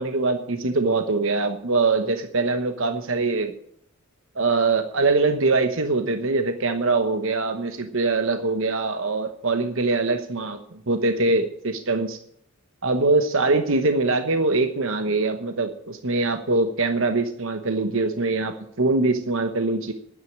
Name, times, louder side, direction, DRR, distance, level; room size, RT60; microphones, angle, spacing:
voice 1, 0.0-3.5 4.3-12.2 12.8-19.9, right 3 dB, 60° right, 8 dB, 1.0 m, -23 dB
11.0 x 9.4 x 9.8 m, 0.70 s
head